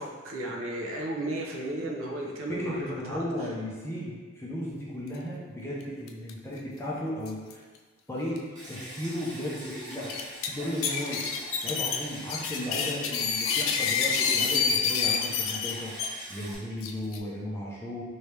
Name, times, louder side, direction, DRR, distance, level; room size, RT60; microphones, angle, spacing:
voice 1, 0.0-3.5, right 1 dB, 70° right, -1 dB, 0.6 m, -34 dB
voice 2, 2.5-7.6 8.1-8.4 8.7-10.1 10.5-11.2 11.6-18.0, left 1 dB, 10° left, -6 dB, 0.5 m, -35 dB
sound 1, 6.1-6.3 6.6-6.7 7.2-7.5 8.4-8.5 8.9-9.0 9.9-10.5 10.8-16.1 16.8-17.2, left 6 dB, 70° left, 0.3 m, -27 dB
Stream, 8.6-16.6, right 1 dB, 20° right, 0.8 m, -43 dB
3.2 x 2.7 x 3.2 m, 1.5 s
head